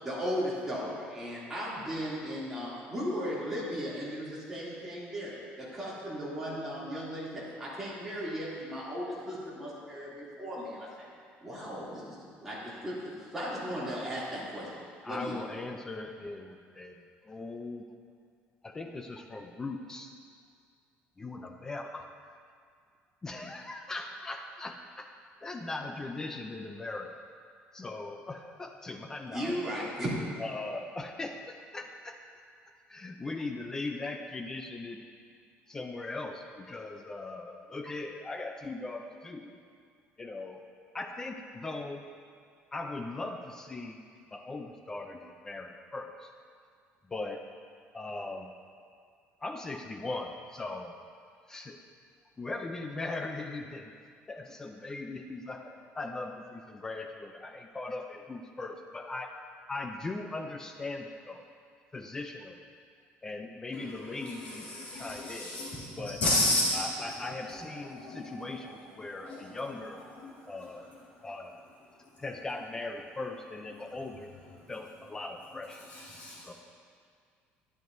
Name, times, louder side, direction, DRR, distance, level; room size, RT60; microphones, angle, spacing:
voice 1, 0.0-11.1 11.4-14.7 15.0-15.3 29.3-30.1, equal, 10° right, -9 dB, 2.6 m, -36 dB
voice 2, 15.0-17.0 17.3-17.8 18.6-20.1 21.2-22.1 23.2-25.1 25.4-27.1 27.7-29.6 30.4-32.2 32.9-35.0 35.7-39.6 40.2-40.6 40.9-42.1 42.7-44.0 44.3-46.3 47.1-47.4 47.9-48.5 49.4-51.0 51.5-51.8 52.4-53.9 54.3-59.3 59.7-61.4 61.9-62.6 63.2-65.5 66.0-66.2 66.7-70.0 70.5-70.9 71.2-71.5 72.2-74.3 74.7-75.8 76.4-76.5, left 2 dB, 15° left, 4 dB, 0.4 m, -39 dB
voice 3, 63.7-68.6 69.0-69.6 70.2-70.5 74.6-74.7 75.8-76.5, left 1 dB, 40° left, -7 dB, 2.0 m, -33 dB
12.0 x 11.0 x 2.6 m, 2.1 s
cardioid pair, 175°, 4 cm